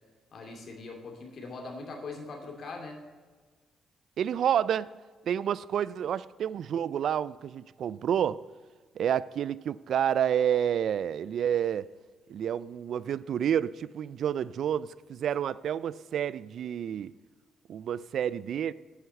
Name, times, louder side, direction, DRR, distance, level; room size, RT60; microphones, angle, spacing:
voice 1, 0.3-3.0, left 3 dB, 60° left, 2.7 m, -41 dB
voice 2, 4.2-4.9 5.3-8.4 9.0-11.9 12.3-17.1 17.7-18.7, right 9 dB, 65° right, 0.3 m, -29 dB
9.5 x 6.3 x 7.9 m
cardioid pair, 90°, 0 cm